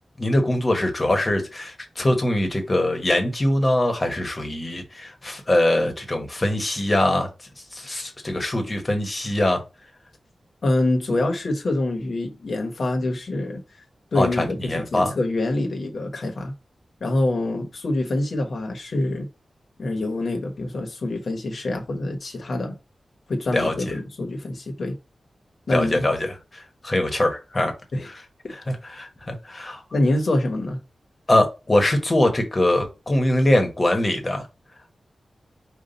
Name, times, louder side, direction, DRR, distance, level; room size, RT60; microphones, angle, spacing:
voice 1, 0.2-7.3 7.7-9.6 14.1-15.1 23.5-23.7 25.7-27.7 28.0-28.2 28.5-29.8 31.3-34.5, left 1 dB, 30° left, 1.2 m, -22 dB
voice 2, 10.6-13.6 14.1-16.5 17.0-19.3 19.8-22.7 23.3-24.9 25.7-26.0 27.9-28.1 29.9-30.8, left 2 dB, 60° left, 1.1 m, -25 dB
5.4 x 2.5 x 3.9 m
wide cardioid pair, 90°, 0 cm